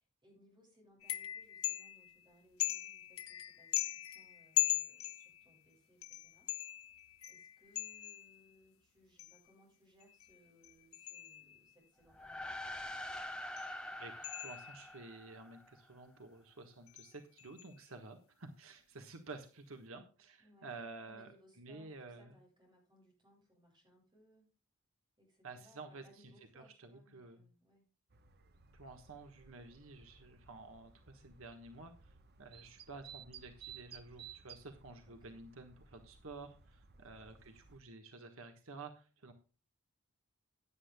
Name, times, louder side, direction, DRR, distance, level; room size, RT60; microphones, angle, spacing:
voice 1, 0.0-7.0 7.3-12.8 20.4-20.7 21.0-24.5 25.2-27.9 35.1-35.4 37.0-37.2, equal, 20° right, -1 dB, 7.3 m, -67 dB
sound 1, 1.0-2.2 2.6-5.6 6.0-8.4 9.2-9.5 10.0-11.7 13.6-13.8 14.2-15.0 16.9-17.1 17.4-17.7, left 16 dB, 75° left, 0.9 m, -40 dB
sound 2, 12.1-15.8, left 1 dB, 5° left, 1.0 m, -45 dB
voice 2, 14.0-21.3 21.6-22.3 25.4-27.4 28.7-39.3, right 3 dB, 70° right, 5 dB, 1.4 m, -51 dB
sound 3, 28.1-37.8, right 7 dB, 45° right, 1.0 m, -57 dB
17.0 x 10.0 x 2.3 m, 0.34 s
head